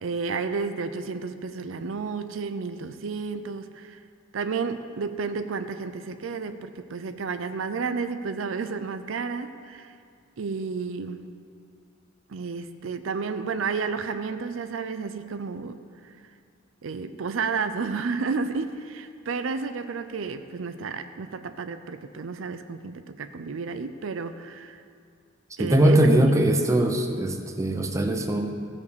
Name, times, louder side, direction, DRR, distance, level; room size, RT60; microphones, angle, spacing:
voice 1, 0.0-4.0 4.3-9.9 10.4-11.4 12.3-16.1 16.8-24.8 25.6-26.4, right 5 dB, 75° right, 9 dB, 0.5 m, -31 dB
voice 2, 25.6-28.5, right 1 dB, 15° right, 4 dB, 0.7 m, -21 dB
16.0 x 5.3 x 6.6 m, 2.2 s
head